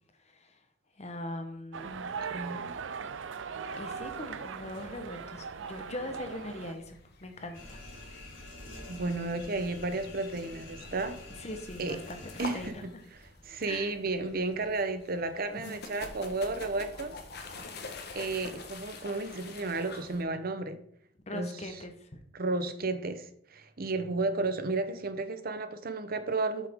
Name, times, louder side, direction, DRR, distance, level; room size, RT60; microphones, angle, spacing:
voice 1, 0.3-0.6 1.0-1.9 3.8-7.8 11.4-13.0 13.7-13.9 15.5-15.8 21.3-22.1, left 1 dB, 35° left, 6 dB, 1.1 m, -41 dB
sound 1, 1.7-6.7, right 6 dB, 80° right, 0.5 m, -39 dB
voice 2, 1.8-2.7 8.9-11.2 11.8-12.0 12.4-12.7 13.1-17.2 18.1-20.8 21.3-21.8 22.3-26.7, right 3 dB, 50° right, 9 dB, 0.9 m, -33 dB
sound 2, 3.7-20.2, left 3 dB, 60° left, 1.3 m, -48 dB
sound 3, 7.5-12.7, left 1 dB, 90° left, 2.9 m, -47 dB
8.6 x 6.7 x 3.7 m, 0.65 s
head